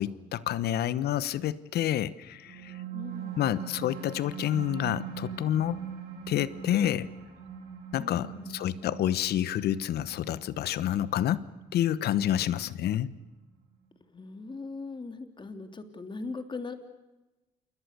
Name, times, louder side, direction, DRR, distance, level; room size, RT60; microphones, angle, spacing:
voice 1, 0.0-2.8 3.4-5.8 6.3-7.1 7.9-11.4 11.7-13.1, left 11 dB, 70° left, 17 dB, 1.1 m, -28 dB
sound 1, 2.3-13.3, right 7 dB, 70° right, 7.4 m, -42 dB
voice 2, 2.9-3.4 8.0-8.6 14.1-16.7, left 3 dB, 30° left, 7 dB, 3.3 m, -40 dB
28.5 x 21.0 x 6.8 m, 1.1 s
supercardioid pair, 65°, 17 cm